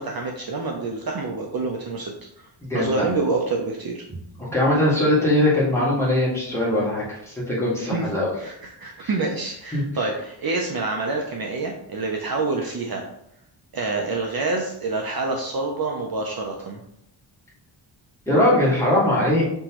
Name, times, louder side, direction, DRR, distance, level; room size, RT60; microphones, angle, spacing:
voice 1, 0.0-2.1 2.7-4.0 7.8-8.1 8.4-13.0 13.7-16.8, right 3 dB, 50° right, 0 dB, 0.6 m, -27 dB
voice 2, 2.6-3.0 4.5-8.3 9.0-9.1 9.7-9.8 18.3-19.4, left 1 dB, 5° left, -7 dB, 1.7 m, -21 dB
5.4 x 3.0 x 2.9 m, 0.75 s
wide cardioid pair, 135°, 49 cm